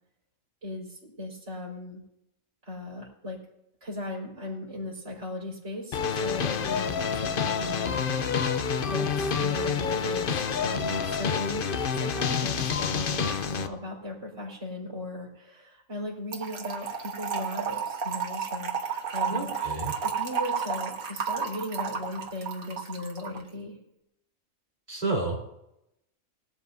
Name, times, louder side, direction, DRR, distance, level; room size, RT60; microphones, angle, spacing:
voice 1, 0.6-2.0 2.6-3.4 3.8-8.5 8.8-19.6 20.0-23.8, left 2 dB, 60° right, -4 dB, 4.7 m, -37 dB
sound 1, 5.9-13.7, left 6 dB, 50° left, 0.8 m, -28 dB
Trickle dribble / Fill (with liquid), 16.3-23.4, right 6 dB, 85° right, 1.8 m, -32 dB
voice 2, 19.3-19.9 24.9-25.4, right 2 dB, 30° right, -2 dB, 3.9 m, -30 dB
20.0 x 12.5 x 2.8 m, 0.82 s
omnidirectional pair, 1.4 m